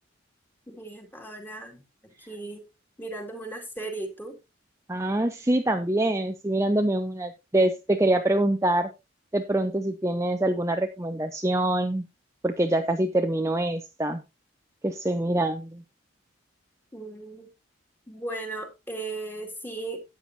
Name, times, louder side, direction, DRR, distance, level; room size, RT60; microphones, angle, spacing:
voice 1, 0.7-2.7 3.0-4.4 16.9-17.5 18.1-20.0, right 2 dB, 10° left, 2.3 m, -37 dB
voice 2, 4.9-8.9 9.3-12.1 12.4-14.2 14.8-15.8, right 1 dB, 15° right, 0.6 m, -25 dB
13.0 x 8.9 x 2.8 m
head